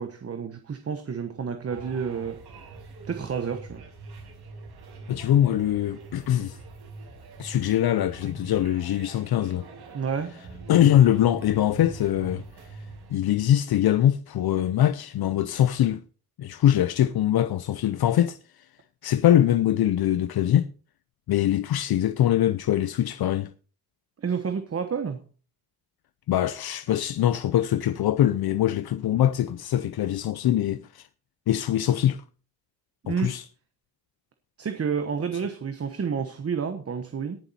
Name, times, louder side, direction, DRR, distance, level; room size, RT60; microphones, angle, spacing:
voice 1, 0.0-2.4 3.1-3.8 9.9-10.3 24.2-25.2 33.0-33.3 34.6-37.4, right 6 dB, 40° right, 1.1 m, -30 dB
sound 1, 1.7-13.2, right 3 dB, 80° right, 5.5 m, -43 dB
voice 2, 5.1-6.6 7.4-9.7 10.7-12.4 12.7-12.8 13.1-16.0 16.4-18.6 19.0-20.7 21.3-23.5 26.3-31.1 31.5-32.2 33.1-33.4, left 11 dB, 70° left, 0.6 m, -23 dB
18.5 x 7.2 x 4.2 m
wide cardioid pair, 135°, 38 cm